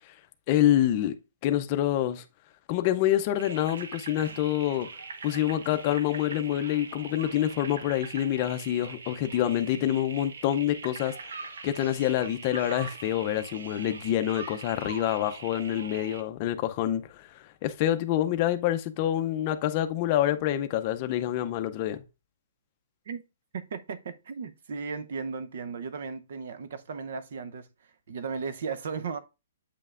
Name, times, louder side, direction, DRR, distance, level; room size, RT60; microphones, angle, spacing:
voice 1, 0.5-1.1 1.4-2.2 2.7-4.9 5.2-11.1 11.6-22.0, left 12 dB, 25° left, 0.5 m, -27 dB
sound 1, 3.4-16.2, right 4 dB, 90° right, 0.8 m, -42 dB
voice 2, 23.5-27.7 28.1-29.2, right 5 dB, 55° right, 0.7 m, -35 dB
8.3 x 5.5 x 2.5 m
hypercardioid pair, 175°, 0 cm